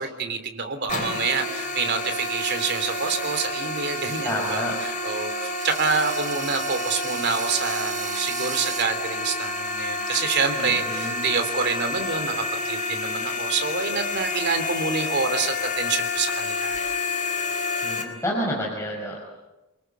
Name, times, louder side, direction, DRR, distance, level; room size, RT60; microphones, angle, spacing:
voice 1, 0.0-16.8, right 5 dB, 50° right, 7 dB, 3.3 m, -27 dB
sound 1, 0.9-18.0, left 2 dB, 35° left, 4.0 m, -29 dB
sound 2, 2.1-4.6 4.9-5.0 5.6-8.8, right 9 dB, 35° right, 1.2 m, -38 dB
voice 2, 4.2-4.8 10.6-11.3 17.8-19.2, equal, 15° left, -3 dB, 5.3 m, -29 dB
29.0 x 21.5 x 8.3 m, 1.0 s
head